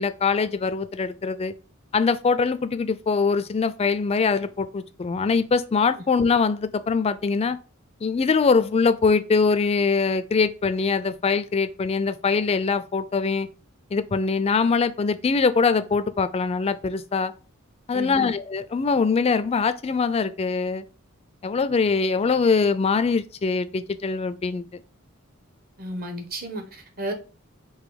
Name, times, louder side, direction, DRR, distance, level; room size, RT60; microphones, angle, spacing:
voice 1, 0.0-1.5 1.9-7.6 8.0-13.5 13.9-17.3 17.9-20.8 21.4-24.6, left 4 dB, 30° left, 0.3 m, -23 dB
voice 2, 17.9-18.3 25.8-27.1, right 1 dB, 50° right, 1.0 m, -33 dB
4.0 x 2.6 x 4.8 m
head